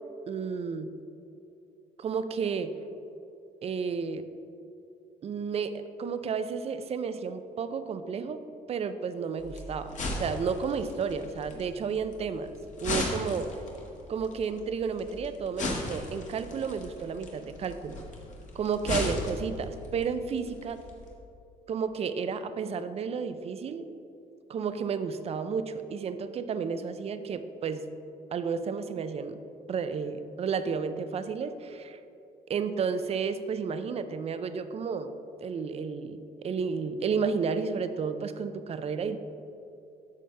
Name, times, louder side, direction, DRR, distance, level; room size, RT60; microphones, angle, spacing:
voice 1, 0.3-0.9 2.0-2.7 3.6-4.3 5.2-8.4 8.7-9.9 10.2-12.5 12.8-13.5 14.1-18.0 18.5-20.8 21.7-23.8 24.5-27.9 28.3-29.4 29.7-32.0 32.5-35.1 35.4-39.2, right 6 dB, 35° right, 10 dB, 0.5 m, -32 dB
sound 1, 9.4-21.1, left 2 dB, 45° left, 1.5 m, -37 dB
9.3 x 6.3 x 3.4 m, 2.8 s
cardioid pair, 110°, 17 cm